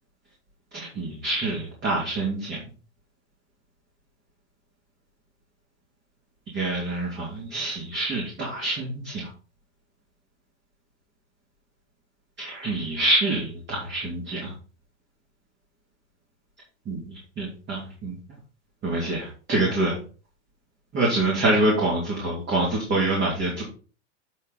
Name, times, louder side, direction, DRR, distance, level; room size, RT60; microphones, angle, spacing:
voice 1, 0.7-2.6 6.5-9.2 12.4-14.5 16.9-17.0 17.4-18.1 18.8-20.0 20.9-23.6, right 2 dB, 30° right, -3 dB, 3.0 m, -26 dB
8.3 x 5.7 x 4.2 m, 0.37 s
supercardioid pair, 145°, 37 cm